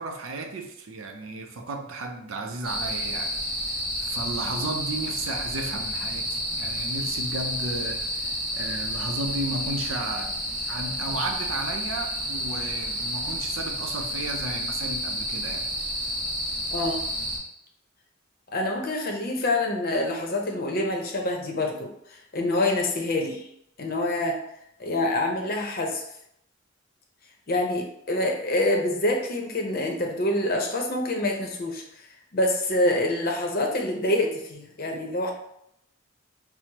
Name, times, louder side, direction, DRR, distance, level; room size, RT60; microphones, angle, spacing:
voice 1, 0.0-15.7 16.0-16.1, right 2 dB, 80° right, 0.5 m, -34 dB
sound 1, 2.6-17.4, equal, 25° right, 1.0 m, -30 dB
voice 2, 16.7-17.0 18.5-23.5 23.8-24.4 24.8-26.0 27.5-32.1 32.3-35.3, left 1 dB, 45° left, 0.7 m, -26 dB
6.0 x 2.0 x 2.8 m
head